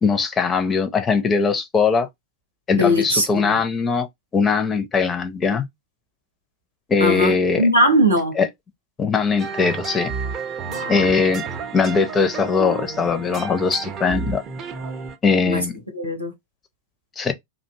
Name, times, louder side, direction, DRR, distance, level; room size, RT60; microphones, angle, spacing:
voice 1, 0.0-2.1 2.7-4.1 4.3-5.7 6.9-7.6 8.4-8.5 9.0-10.1 10.9-11.4 11.7-14.4 15.2-15.7 17.2-17.3, left 5 dB, 20° left, 0.5 m, -20 dB
voice 2, 2.7-3.6 7.0-8.3 10.6-11.1 15.5-15.6 15.9-16.3, equal, 85° right, 0.8 m, -20 dB
sound 1, 9.4-15.2, right 6 dB, 30° right, 0.5 m, -31 dB
2.5 x 2.1 x 2.7 m
figure-of-eight pair, 90°, 0 cm